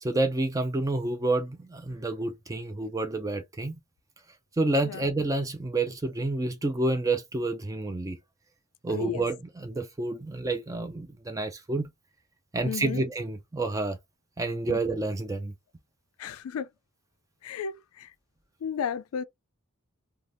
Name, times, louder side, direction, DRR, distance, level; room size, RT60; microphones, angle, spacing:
voice 1, 0.0-3.8 4.6-8.2 8.8-11.9 12.5-14.0 14.4-15.5, right 2 dB, 15° right, 0.3 m, -29 dB
voice 2, 8.9-9.2 12.6-13.0 14.7-14.8 16.2-16.7 17.4-17.7 18.6-19.2, left 7 dB, 75° left, 0.3 m, -32 dB
3.3 x 2.2 x 2.5 m
head